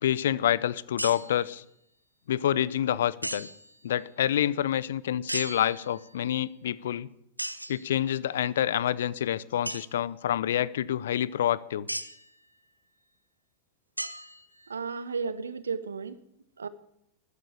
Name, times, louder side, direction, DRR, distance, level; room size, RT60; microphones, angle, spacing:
voice 1, 0.0-1.6 2.3-3.5 3.8-7.1 7.7-11.9, left 11 dB, 60° left, 21 dB, 0.6 m, -27 dB
sound 1, 1.0-1.5 3.2-3.8 5.3-6.2 7.4-7.9 9.6-9.9 11.9-12.3 14.0-14.8, right 1 dB, 90° right, 0.7 m, -36 dB
voice 2, 14.7-16.2 16.6-16.7, right 5 dB, 70° right, 16 dB, 1.0 m, -33 dB
13.5 x 9.6 x 8.6 m, 0.76 s
figure-of-eight pair, 90°, 0 cm